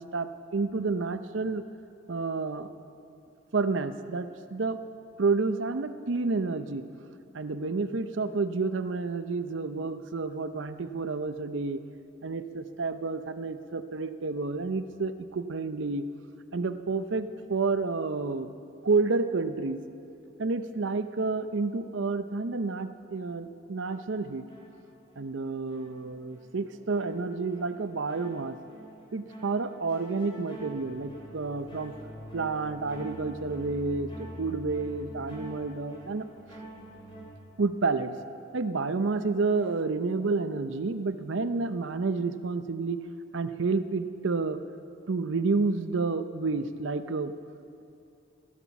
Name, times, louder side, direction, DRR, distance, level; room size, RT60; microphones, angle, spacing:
voice 1, 0.0-1.6 2.1-2.7 3.5-4.8 5.2-6.8 7.3-11.8 12.2-16.0 16.5-18.5 18.8-19.8 20.4-24.4 25.2-28.6 29.1-31.9 32.3-36.3 37.6-38.1 38.5-43.0 43.3-44.6 45.1-47.3, right 4 dB, 75° right, 11 dB, 0.6 m, -30 dB
sound 1, 23.9-25.3 25.7-37.2, right 1 dB, 25° left, 3.3 m, -46 dB
15.5 x 11.5 x 7.1 m, 2.6 s
head